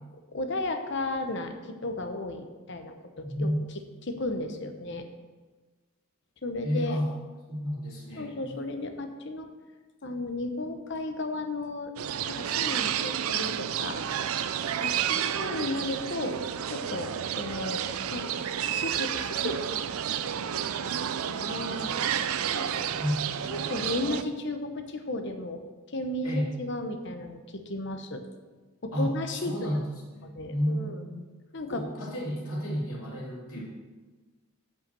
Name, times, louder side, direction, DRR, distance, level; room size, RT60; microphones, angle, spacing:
voice 1, 0.3-5.1 6.4-7.0 8.2-9.5 10.0-11.9 12.3-14.0 14.8-16.4 16.7-17.8 18.1-19.8 20.3-22.1 22.5-22.9 23.5-25.6 25.9-28.2 28.8-29.7 30.2-31.0 31.5-31.9, left 2 dB, 55° left, 6 dB, 0.9 m, -34 dB
voice 2, 3.2-3.6 6.6-7.0 7.5-8.5 23.0-23.2 26.2-26.5 28.9-29.1 29.3-29.8 30.1-31.3 31.7-33.6, equal, 75° left, -5 dB, 3.0 m, -31 dB
sound 1, 12.0-24.2, right 9 dB, 75° right, 0.4 m, -31 dB
7.8 x 5.8 x 6.8 m, 1.3 s
head